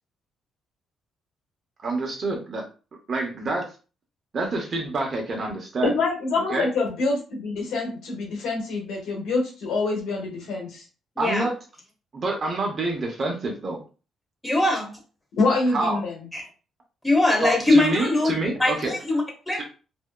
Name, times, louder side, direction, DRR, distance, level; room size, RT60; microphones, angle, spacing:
voice 1, 1.8-2.6 3.1-3.7 4.3-5.9 6.5-6.7 11.2-11.5 12.1-13.8 15.7-16.0 17.4-18.9 19.6-19.7, right 3 dB, 45° right, 2 dB, 0.8 m, -27 dB
voice 2, 5.8-10.8 15.4-16.2, left 3 dB, 85° left, -1 dB, 1.1 m, -25 dB
voice 3, 11.2-11.5 14.4-14.9 16.3-16.4 17.0-18.3 18.6-19.6, left 2 dB, 5° left, 1 dB, 1.0 m, -21 dB
2.6 x 2.2 x 2.3 m, 0.34 s
cardioid pair, 90°, 0 cm